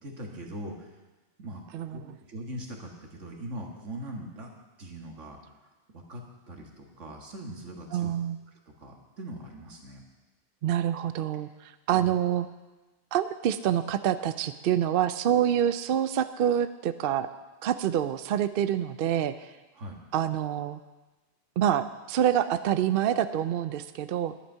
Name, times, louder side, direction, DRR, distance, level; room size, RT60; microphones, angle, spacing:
voice 1, 0.0-0.9 1.4-1.6 1.9-2.0 2.3-4.5 4.8-5.4 5.9-8.1 8.8-10.0 11.9-12.1 19.8-20.0, right 1 dB, 80° right, 1 dB, 2.0 m, -41 dB
voice 2, 1.7-2.1 7.9-8.4 10.6-12.5 13.1-17.3 17.6-19.5 20.1-20.8 21.6-24.3, right 10 dB, 60° right, 12 dB, 0.6 m, -26 dB
11.0 x 10.5 x 5.6 m, 1.2 s
omnidirectional pair, 1.2 m